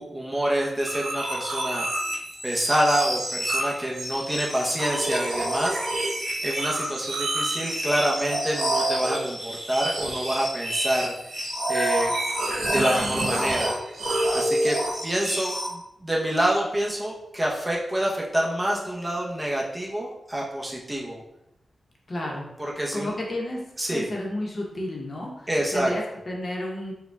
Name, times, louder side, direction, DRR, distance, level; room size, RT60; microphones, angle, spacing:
voice 1, 0.0-1.9 2.4-6.1 6.4-11.1 11.7-12.1 12.7-13.7 14.3-14.8 15.0-21.2 22.6-23.1 23.8-24.1 25.5-25.9, right 1 dB, 10° right, -3 dB, 0.7 m, -27 dB
sound 1, 0.8-15.7, right 1 dB, 70° right, 1.1 m, -28 dB
voice 2, 22.1-22.5 22.9-23.6 23.9-26.9, left 1 dB, 40° left, -2 dB, 0.8 m, -31 dB
5.0 x 2.2 x 3.3 m, 0.84 s
wide cardioid pair, 125°, 0 cm